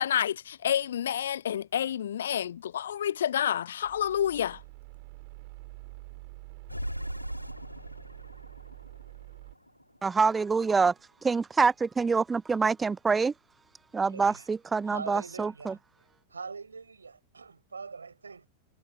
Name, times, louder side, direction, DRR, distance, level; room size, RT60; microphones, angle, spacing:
voice 1, 0.0-4.6, left 10 dB, 65° left, 0.7 m, -29 dB
sound 1, 3.8-9.6, right 25 dB, 50° right, 4.3 m, -47 dB
sound 2, 6.7-10.1, equal, 90° left, 2.1 m, -40 dB
voice 2, 10.0-10.9 11.2-13.3 13.9-15.7, right 4 dB, 15° right, 0.4 m, -26 dB
voice 3, 14.1-14.5 14.9-15.8 16.3-18.5, right 5 dB, 75° right, 4.6 m, -42 dB
figure-of-eight pair, 90°, 0 cm